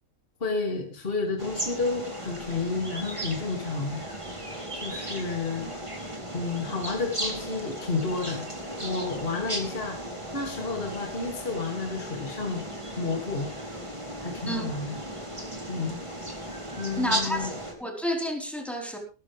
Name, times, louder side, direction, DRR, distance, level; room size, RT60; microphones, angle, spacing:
voice 1, 0.4-4.0 4.8-5.7 6.3-8.4 8.8-10.0 10.3-12.6 13.0-13.5 14.2-15.0 15.7-16.0 16.8-17.5, left 4 dB, 35° left, 2 dB, 2.8 m, -31 dB
sound 1, 1.4-17.7, right 1 dB, 20° right, 3.3 m, -36 dB
voice 2, 17.0-17.5 17.8-19.0, equal, ahead, 2 dB, 4.2 m, -30 dB
18.5 x 13.5 x 3.4 m, 0.34 s
omnidirectional pair, 1.7 m